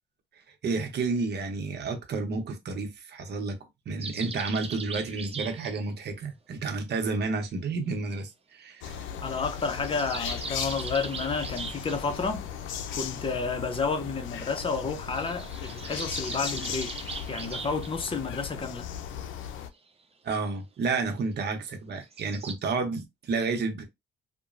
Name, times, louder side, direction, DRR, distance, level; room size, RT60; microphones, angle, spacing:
voice 1, 0.6-3.6 3.9-9.0 20.2-23.8, right 4 dB, 55° right, 0.8 m, -31 dB
sound 1, 4.0-5.7 9.5-12.0 15.1-17.9 22.0-22.5, right 4 dB, 30° right, 0.6 m, -39 dB
sound 2, 8.8-19.7, left 8 dB, 75° left, 0.5 m, -37 dB
voice 2, 9.2-12.5 12.9-16.9 17.3-18.9, left 4 dB, 25° left, 0.7 m, -31 dB
2.9 x 2.2 x 2.5 m
cardioid pair, 90°, 20 cm